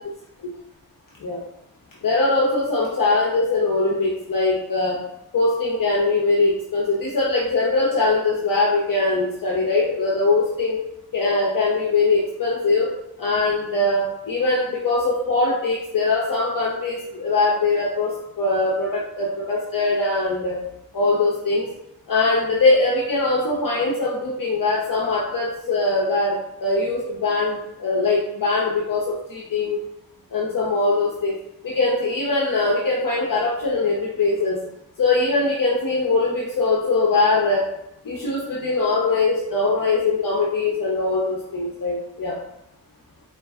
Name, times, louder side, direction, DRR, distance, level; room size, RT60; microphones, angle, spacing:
voice 1, 2.0-5.0 5.3-10.8 11.1-12.9 13.2-20.6 20.9-21.7 22.1-29.8 30.3-31.4 31.6-34.6 35.0-37.7 38.0-42.4, left 3 dB, 65° left, -3 dB, 0.7 m, -21 dB
4.4 x 2.5 x 3.5 m, 0.80 s
wide cardioid pair, 140°, 35 cm